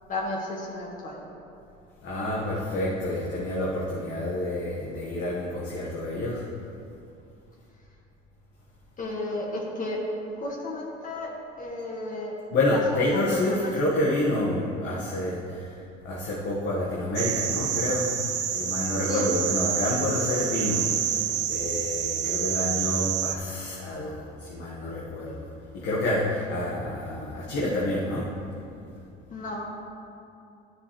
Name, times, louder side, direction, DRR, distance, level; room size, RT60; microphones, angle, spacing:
voice 1, 0.1-1.2 9.0-10.0 10.4-12.3 12.7-13.7 19.1-19.3 29.3-29.7, left 1 dB, 40° left, -2 dB, 1.9 m, -33 dB
voice 2, 2.0-6.4 12.5-18.1 18.5-28.3, left 1 dB, 60° left, -6 dB, 1.7 m, -28 dB
sound 1, 17.2-23.4, right 9 dB, 60° right, 0.9 m, -28 dB
13.0 x 6.8 x 3.3 m, 2.7 s
supercardioid pair, 100°, 21 cm